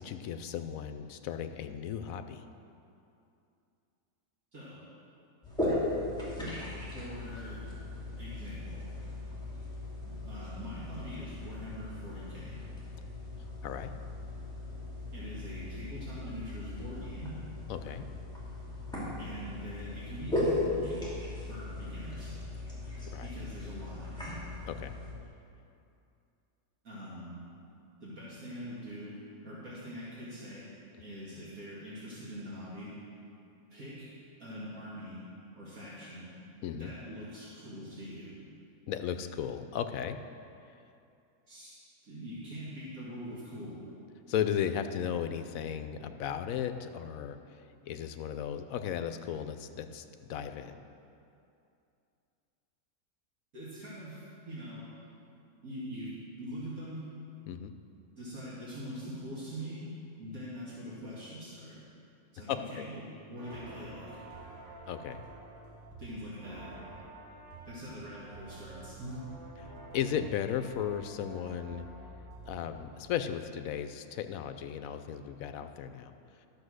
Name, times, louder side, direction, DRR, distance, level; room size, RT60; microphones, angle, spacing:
voice 1, 0.0-2.4 13.6-13.9 17.7-18.0 23.1-23.3 24.7-24.9 36.6-36.9 38.9-40.2 44.3-47.4 47.9-50.8 57.5-57.7 62.5-62.9 64.9-65.2 67.0-67.1 69.9-71.8 72.5-76.1, left 9 dB, 75° left, 9 dB, 1.0 m, -35 dB
sound 1, 5.4-25.1, left 2 dB, 5° left, 2.7 m, -38 dB
voice 2, 6.9-7.6 8.2-8.8 10.1-12.6 15.1-17.3 19.2-21.0 21.5-22.3 23.2-24.0 26.8-27.4 28.0-29.2 29.4-30.7 31.0-32.9 33.7-34.1 34.4-35.2 35.6-36.3 36.7-38.3 41.5-41.7 42.0-43.8 53.5-54.8 55.6-56.1 56.4-57.0 58.2-59.8 60.2-61.8 62.3-64.2 66.0-66.7 67.7-69.2, equal, 70° right, -9 dB, 2.4 m, -43 dB
sound 2, 63.4-72.8, right 2 dB, 35° right, 1.5 m, -49 dB
12.0 x 6.7 x 6.3 m, 2.6 s
omnidirectional pair, 1.5 m